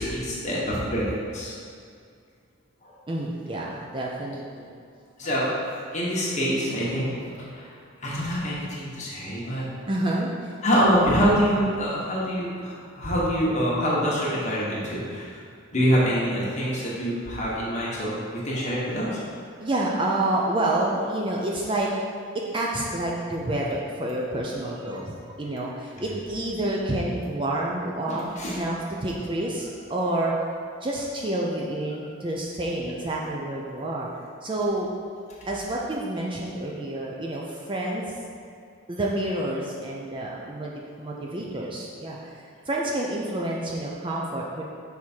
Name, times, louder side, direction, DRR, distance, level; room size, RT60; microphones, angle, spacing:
voice 1, 0.0-1.5 2.8-2.9 5.2-7.7 8.0-9.6 10.6-15.3 15.7-19.2 28.1-28.6, equal, 35° left, -6 dB, 1.3 m, -25 dB
voice 2, 3.1-4.7 9.9-10.5 19.6-21.9 22.3-30.3 30.8-34.1 34.4-34.9 35.5-38.1 38.9-40.7 41.0-44.6, right 1 dB, 25° right, -3 dB, 0.5 m, -28 dB
6.2 x 3.6 x 4.4 m, 2.2 s
head